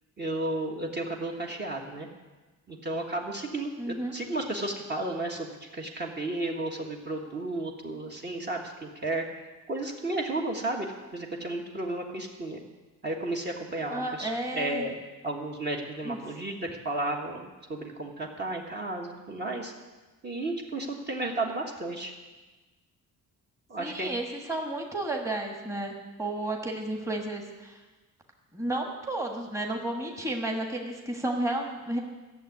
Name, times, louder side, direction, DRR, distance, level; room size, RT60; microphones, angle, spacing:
voice 1, 0.2-2.1 2.7-9.2 9.7-10.9 11.1-12.6 13.0-14.9 15.2-19.7 20.2-22.1 23.7-24.1, right 2 dB, 30° right, 0 dB, 1.5 m, -33 dB
voice 2, 3.8-4.1 13.9-14.9 16.0-16.2 23.8-27.8 28.5-32.0, right 1 dB, 10° right, 1 dB, 1.5 m, -32 dB
14.0 x 7.2 x 9.3 m, 1.2 s
cardioid pair, 150°, 33 cm